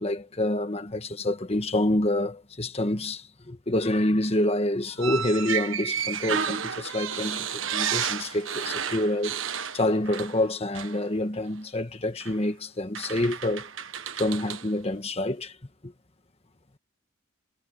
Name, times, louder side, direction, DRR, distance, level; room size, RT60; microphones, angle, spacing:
voice 1, 0.0-3.2 3.5-9.4 9.7-13.7 14.2-15.5, left 1 dB, 30° left, 1.4 m, -27 dB
sound 1, 5.0-10.5 10.7-11.0 12.2-12.4 12.9-14.7, right 8 dB, 70° right, 1.5 m, -31 dB
head